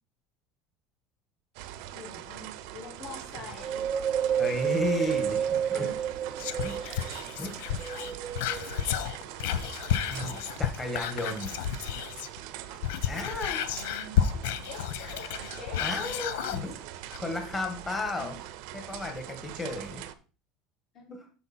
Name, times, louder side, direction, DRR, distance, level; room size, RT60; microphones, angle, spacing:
sound 1, 1.5-20.1, right 12 dB, 65° right, 0.7 m, -43 dB
voice 1, 1.6-3.8 4.2-4.4 4.9-6.1 6.8-7.8 13.1-14.3 14.7-16.3 16.5-16.6 18.1-18.4 20.9-21.2, left 4 dB, 45° left, -1 dB, 3.3 m, -47 dB
Wind, 3.6-7.2 7.7-9.0 9.5-9.6, right 8 dB, 30° right, 0.6 m, -30 dB
voice 2, 4.4-5.9 6.6-6.8 7.4-7.6 8.1-8.2 8.9-9.0 10.1-11.5 13.1-13.6 15.8-16.8 17.1-18.3 18.7-20.0 21.1-21.2, left 2 dB, 15° left, 4 dB, 1.7 m, -34 dB
Whispering, 6.4-12.4 12.7-16.6 17.1-17.2, left 9 dB, 90° left, 0.7 m, -31 dB
8.0 x 5.6 x 4.4 m, 0.36 s
cardioid pair, 160°, 0 cm